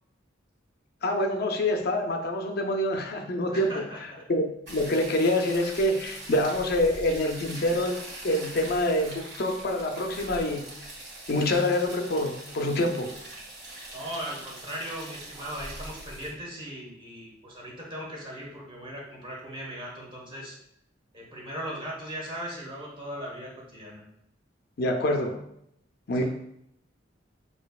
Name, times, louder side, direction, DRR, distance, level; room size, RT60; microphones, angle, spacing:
voice 1, 1.0-3.8 4.3-10.7 11.3-13.1 24.8-25.4 26.1-26.2, left 1 dB, 55° left, 3 dB, 0.5 m, -26 dB
voice 2, 3.5-4.2 13.9-20.6 21.1-24.0, equal, 25° right, -3 dB, 1.3 m, -38 dB
sound 1, 4.7-16.3, right 1 dB, 60° right, 1.6 m, -42 dB
6.6 x 2.7 x 2.4 m, 0.75 s
head